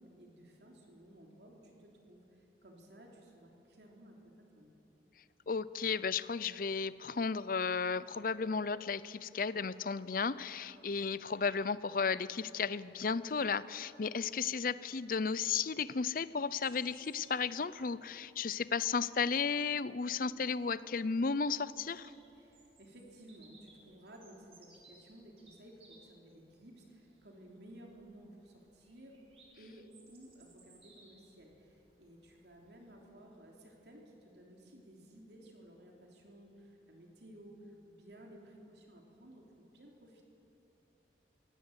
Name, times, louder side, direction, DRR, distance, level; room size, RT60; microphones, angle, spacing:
voice 1, 0.0-4.7 22.3-29.2 29.6-40.2, right 1 dB, 70° right, 0 dB, 3.4 m, -56 dB
voice 2, 5.5-22.1, left 5 dB, 50° left, 17 dB, 0.5 m, -34 dB
Bird vocalization bird call bird song, 16.6-33.0, right 3 dB, 35° right, 4.3 m, -65 dB
23.5 x 17.0 x 8.1 m, 2.9 s
head